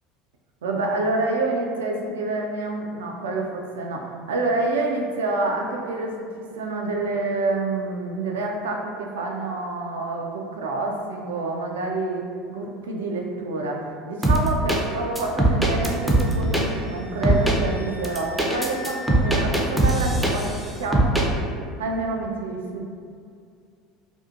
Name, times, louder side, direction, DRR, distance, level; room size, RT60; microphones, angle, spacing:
voice 1, 0.6-12.2 12.5-21.2 21.8-22.8, right 2 dB, 75° right, 1 dB, 0.3 m, -27 dB
sound 1, 14.2-14.8 15.2-16.6 17.2-17.6 18.0-20.6 20.9-21.3, right 1 dB, 5° right, 0.4 m, -20 dB
Wind instrument woodwind instrument, 15.7-19.3, left 2 dB, 70° left, 0.7 m, -42 dB
2.6 x 2.4 x 2.4 m, 2.3 s
figure-of-eight pair, 70°, 0 cm